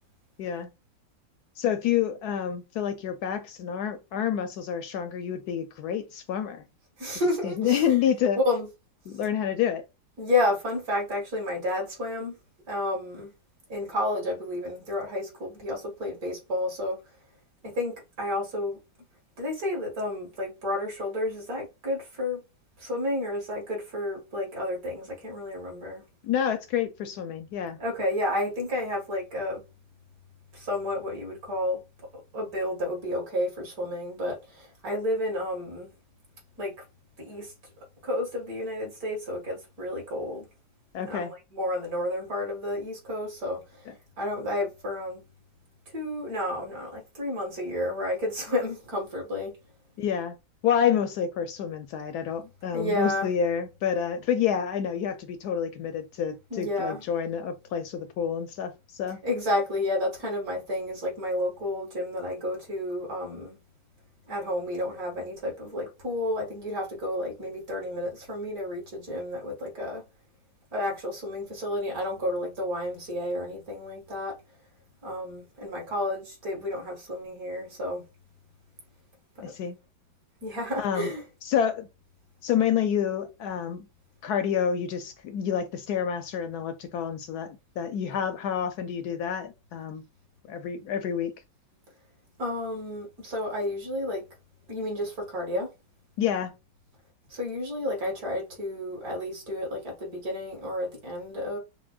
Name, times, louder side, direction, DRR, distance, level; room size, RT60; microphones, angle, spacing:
voice 1, 0.4-0.7 1.6-6.6 7.4-8.4 9.1-9.8 26.2-27.8 40.9-41.3 43.9-44.0 50.0-50.4 50.6-59.2 79.4-79.8 80.8-81.1 81.4-81.9 82.4-83.9 84.2-90.0 90.5-91.3 96.2-96.5, left 8 dB, 75° left, 0.9 m, -28 dB
voice 2, 7.0-7.9 8.4-8.7 10.2-12.4 12.7-13.3 13.7-17.0 17.6-18.8 19.4-22.4 22.8-26.0 27.8-29.6 30.5-31.8 32.3-35.9 36.6-36.7 37.2-37.5 38.0-40.5 41.1-43.9 44.2-45.2 45.9-49.5 52.7-53.3 56.5-57.0 59.2-63.6 64.3-70.0 70.7-74.3 75.0-78.0 80.4-81.2 92.4-94.2 94.7-95.7 97.3-101.6, left 1 dB, 50° right, 2.2 m, -31 dB
5.8 x 2.1 x 2.3 m
omnidirectional pair, 2.0 m